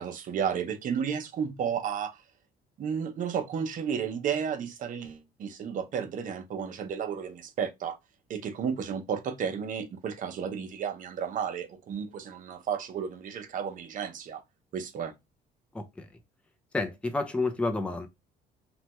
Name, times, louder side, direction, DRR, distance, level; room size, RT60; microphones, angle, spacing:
voice 1, 0.0-2.2 2.8-8.0 8.3-14.4 14.7-15.1, right 7 dB, 50° right, 0.7 m, -32 dB
voice 2, 15.7-16.1 16.7-18.1, left 3 dB, 5° left, 0.5 m, -30 dB
3.2 x 2.2 x 2.9 m
cardioid pair, 110°, 17 cm